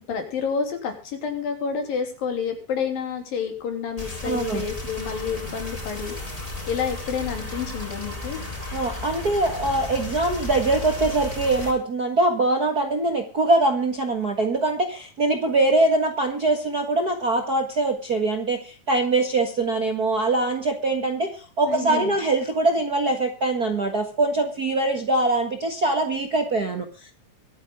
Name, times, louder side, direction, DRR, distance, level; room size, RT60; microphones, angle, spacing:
voice 1, 0.1-8.4 21.7-22.2, left 6 dB, 80° left, 4 dB, 4.9 m, -29 dB
sound 1, 4.0-11.7, left 2 dB, 10° left, 4.6 m, -34 dB
voice 2, 4.2-4.6 8.7-27.1, right 2 dB, 40° right, 4 dB, 1.4 m, -23 dB
23.5 x 9.5 x 3.7 m, 0.35 s
omnidirectional pair, 4.0 m